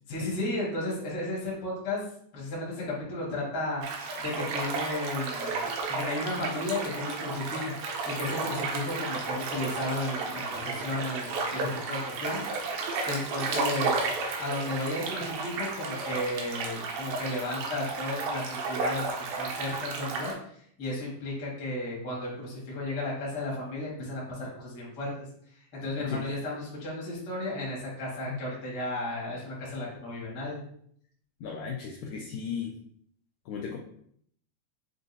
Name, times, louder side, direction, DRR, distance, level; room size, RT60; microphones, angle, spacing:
voice 1, 0.1-2.0 2.3-7.7 8.0-14.0 14.4-20.3 20.8-25.1 25.8-30.6, left 2 dB, 45° left, -6 dB, 1.2 m, -34 dB
sound 1, 3.8-20.3, right 4 dB, 80° right, 2.4 m, -33 dB
voice 2, 31.4-32.7 33.5-33.8, left 6 dB, 85° left, -1 dB, 1.9 m, -35 dB
6.4 x 2.5 x 2.6 m, 0.65 s
omnidirectional pair, 4.2 m